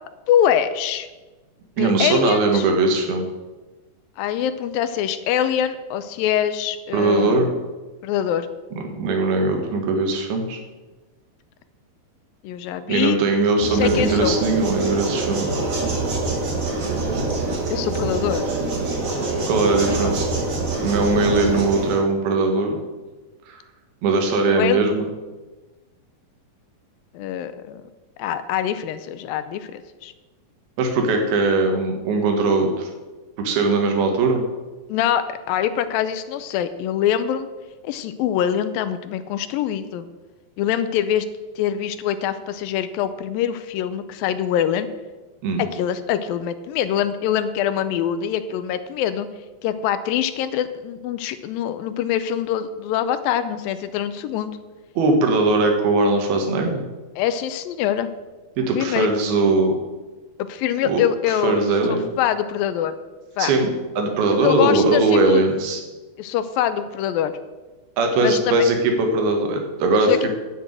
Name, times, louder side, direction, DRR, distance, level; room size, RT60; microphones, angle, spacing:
voice 1, 0.3-1.1 1.8-2.7 4.2-7.6 8.0-8.5 12.4-14.4 17.7-18.4 20.0-20.1 24.5-24.8 27.1-27.8 28.2-30.1 34.9-37.5 37.8-40.1 40.6-41.3 41.6-44.9 45.6-49.3 49.6-54.5 57.2-58.1 58.8-59.1 60.4-61.6 61.9-62.9 63.4-63.5 64.4-65.4 66.2-67.3 68.2-68.6 70.0-70.3, left 10 dB, 80° left, 12 dB, 2.3 m, -24 dB
voice 2, 1.8-3.3 6.9-7.5 8.8-10.6 12.9-15.5 19.5-20.3 20.8-22.8 23.5-23.6 24.0-25.1 30.8-32.9 33.4-34.4 45.4-45.7 55.0-56.8 58.6-59.8 60.8-61.0 61.3-62.1 63.4-63.7 64.0-65.8 68.0-70.3, right 3 dB, 85° right, 4 dB, 3.5 m, -20 dB
sound 1, 13.6-22.0, right 3 dB, 65° right, 0.8 m, -25 dB
10.5 x 6.3 x 8.8 m, 1.2 s
omnidirectional pair, 4.3 m